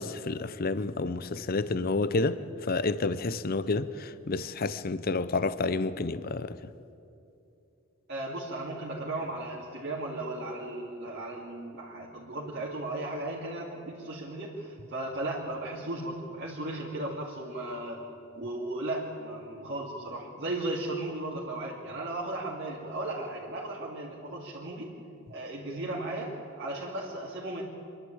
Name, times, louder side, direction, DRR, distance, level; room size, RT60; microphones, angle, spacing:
voice 1, 0.0-6.6, left 3 dB, 45° left, 0.6 m, -30 dB
voice 2, 8.1-18.1 18.3-24.9 25.3-26.3 26.6-27.6, right 2 dB, 55° right, 2.4 m, -36 dB
26.0 x 11.5 x 8.8 m
head